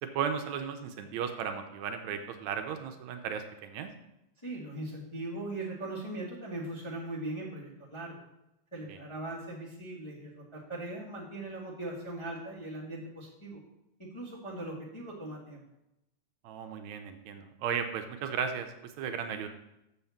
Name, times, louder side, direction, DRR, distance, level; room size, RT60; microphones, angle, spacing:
voice 1, 0.0-3.9 8.9-9.0 16.4-19.5, right 7 dB, 75° right, 6 dB, 1.9 m, -35 dB
voice 2, 4.4-8.2 8.7-13.6 14.0-15.6, right 2 dB, 15° left, -6 dB, 1.1 m, -40 dB
6.9 x 5.7 x 7.1 m, 0.88 s
omnidirectional pair, 3.4 m